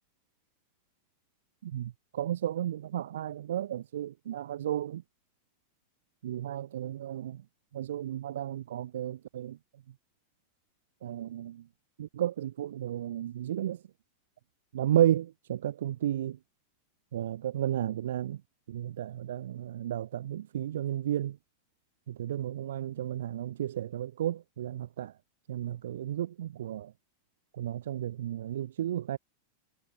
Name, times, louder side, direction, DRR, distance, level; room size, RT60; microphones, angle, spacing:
voice 1, 1.6-5.0 6.2-7.4 7.7-9.6 11.0-11.6 12.0-13.8 14.7-16.4 17.1-18.4 18.7-21.4 22.1-25.1 25.5-26.9 27.6-29.2, right 11 dB, 60° right, 0.7 m, -33 dB
figure-of-eight pair, 90°, 0 cm